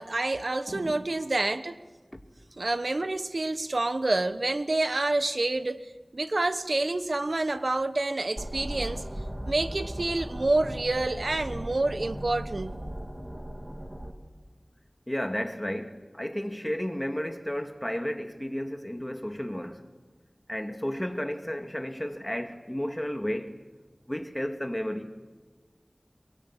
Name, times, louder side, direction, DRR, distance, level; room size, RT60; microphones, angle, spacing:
voice 1, 0.0-1.7 2.6-9.0 9.5-12.7, right 2 dB, 70° right, 1.2 m, -28 dB
voice 2, 0.7-1.0 2.1-2.2 15.1-19.8 20.5-23.6 24.1-25.1, equal, 15° left, 2.4 m, -33 dB
sound 1, 8.4-14.1, right 1 dB, 25° right, 2.9 m, -37 dB
23.5 x 22.5 x 8.4 m
wide cardioid pair, 55°, 0 cm